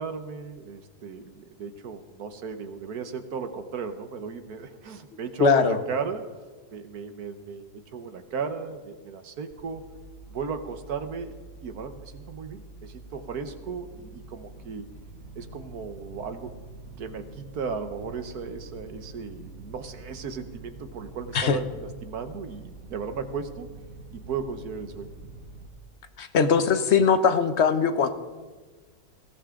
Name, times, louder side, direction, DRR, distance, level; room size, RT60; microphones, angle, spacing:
voice 1, 0.0-6.2 6.7-9.8 10.3-11.3 11.6-14.8 15.4-16.5 17.0-23.7 24.1-25.1, right 5 dB, 75° right, 8 dB, 1.6 m, -35 dB
voice 2, 5.4-5.8 21.3-21.6 26.2-28.1, left 6 dB, 50° left, 10 dB, 1.1 m, -21 dB
sound 1, 9.5-25.7, right 3 dB, 60° right, 2.4 m, -46 dB
20.5 x 17.0 x 3.8 m, 1.3 s
omnidirectional pair, 1.6 m